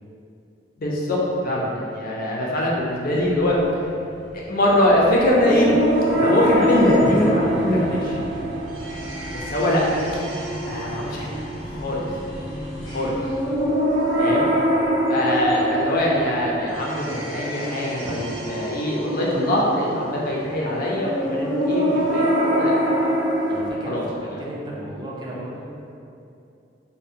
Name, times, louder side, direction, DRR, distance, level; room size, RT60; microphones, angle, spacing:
voice 1, 0.8-3.6 4.3-5.7 6.2-8.2 9.3-9.8 10.6-11.3 11.6-12.1 12.9-13.1 14.2-14.5 15.1-23.1 23.9-24.0, left 1 dB, 50° left, -4 dB, 0.4 m, -22 dB
sound 1, 2.9-17.2, equal, 80° left, 0.7 m, -39 dB
sound 2, 5.4-23.6, equal, 80° right, 0.5 m, -25 dB
voice 2, 23.5-25.7, right 1 dB, 25° right, -5 dB, 0.3 m, -34 dB
2.6 x 2.0 x 2.5 m, 2.6 s
head